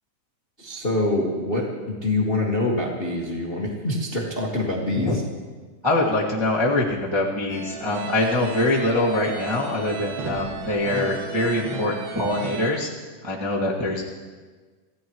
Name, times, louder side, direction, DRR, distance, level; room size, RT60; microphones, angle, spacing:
voice 1, 0.6-5.1, left 2 dB, 40° left, -2 dB, 0.8 m, -25 dB
voice 2, 5.8-12.9 13.2-14.0, left 2 dB, 25° right, -5 dB, 0.6 m, -24 dB
sound 1, 7.5-12.7, right 5 dB, 75° right, 3.9 m, -35 dB
26.5 x 15.5 x 3.1 m, 1.4 s
omnidirectional pair, 4.2 m